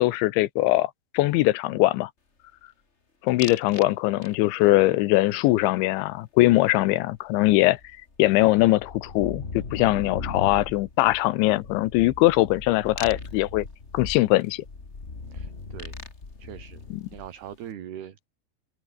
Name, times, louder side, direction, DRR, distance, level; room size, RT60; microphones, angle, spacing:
voice 1, 0.0-2.1 3.2-7.8 8.2-13.7 13.9-14.6 16.9-17.0, left 18 dB, 80° left, 3.2 m, -21 dB
sound 1, 3.4-3.9 4.2-4.7 7.1-7.2 7.5-17.5, left 3 dB, 30° left, 1.4 m, -38 dB
voice 2, 15.3-15.9 16.4-16.8 17.1-18.3, right 10 dB, 60° right, 4.1 m, -41 dB
open air
omnidirectional pair, 5.4 m